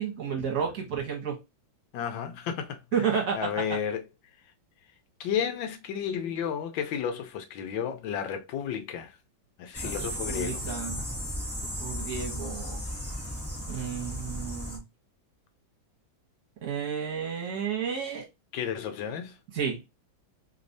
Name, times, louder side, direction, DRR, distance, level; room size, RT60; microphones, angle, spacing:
voice 1, 0.0-1.4 2.9-3.5 9.8-11.0 11.8-12.8 13.7-14.8 16.6-18.2 19.5-19.8, right 7 dB, 55° right, 1.7 m, -31 dB
voice 2, 1.9-3.1 3.3-4.0 5.2-9.2 9.6-10.6 18.5-19.4, left 8 dB, 75° left, 1.4 m, -32 dB
sound 1, 9.7-14.8, equal, 15° left, 0.6 m, -35 dB
3.5 x 3.0 x 2.6 m
omnidirectional pair, 2.2 m